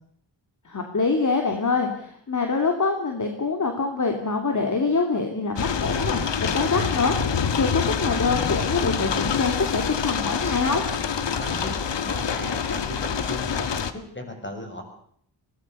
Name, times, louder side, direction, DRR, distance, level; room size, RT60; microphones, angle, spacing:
voice 1, 0.6-7.1 7.6-10.8, left 4 dB, 40° left, 4 dB, 3.0 m, -25 dB
sound 1, 5.6-13.9, left 6 dB, 70° left, 1.7 m, -26 dB
voice 2, 11.4-14.8, left 1 dB, 25° left, 4 dB, 7.0 m, -36 dB
23.5 x 18.5 x 6.9 m, 0.65 s
wide cardioid pair, 120°, 45 cm